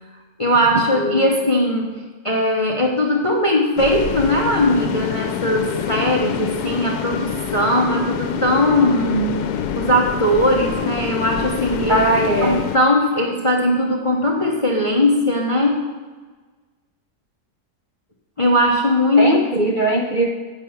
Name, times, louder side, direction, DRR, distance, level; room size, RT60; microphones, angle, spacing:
voice 1, 0.4-1.9 2.2-9.4 9.8-12.1 12.4-15.9 18.4-19.7, left 1 dB, 30° left, 0 dB, 0.6 m, -19 dB
voice 2, 1.0-1.3 11.9-12.6 19.2-20.3, right 1 dB, 50° right, 0 dB, 0.6 m, -19 dB
sound 1, 3.8-12.8, left 8 dB, 90° left, 1.1 m, -26 dB
9.1 x 4.9 x 5.6 m, 1.4 s
omnidirectional pair, 1.6 m